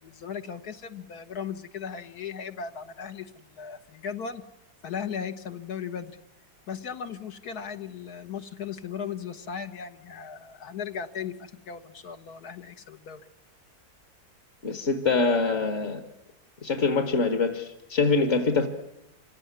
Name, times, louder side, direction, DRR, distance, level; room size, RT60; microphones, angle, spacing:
voice 1, 0.0-4.4 4.8-6.1 6.7-13.2, left 7 dB, 70° left, 8 dB, 1.8 m, -37 dB
voice 2, 14.6-16.0 16.6-18.7, left 4 dB, 45° left, 8 dB, 1.7 m, -24 dB
26.0 x 17.0 x 9.6 m, 0.88 s
omnidirectional pair, 1.7 m